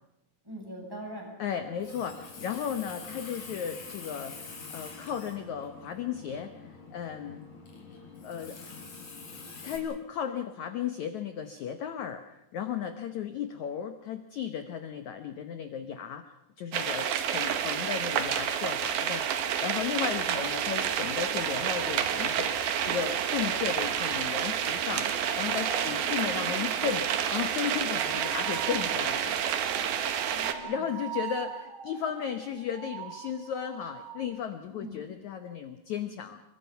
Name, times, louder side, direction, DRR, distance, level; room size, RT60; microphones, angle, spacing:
voice 1, 0.4-1.3 25.8-26.7 30.3-30.8 34.7-35.0, right 1 dB, 5° right, -1 dB, 7.8 m, -42 dB
voice 2, 1.4-7.4 8.2-8.6 9.6-22.6 22.8-29.4 30.6-36.4, left 8 dB, 85° left, 8 dB, 1.6 m, -35 dB
Water tap faucet, 1.6-9.8, left 4 dB, 45° left, 5.4 m, -45 dB
sound 1, 16.7-30.5, right 9 dB, 65° right, 3.1 m, -29 dB
sound 2, 20.9-22.6 23.8-34.3, right 8 dB, 45° right, 2.2 m, -44 dB
28.5 x 24.0 x 5.7 m, 0.87 s
omnidirectional pair, 4.9 m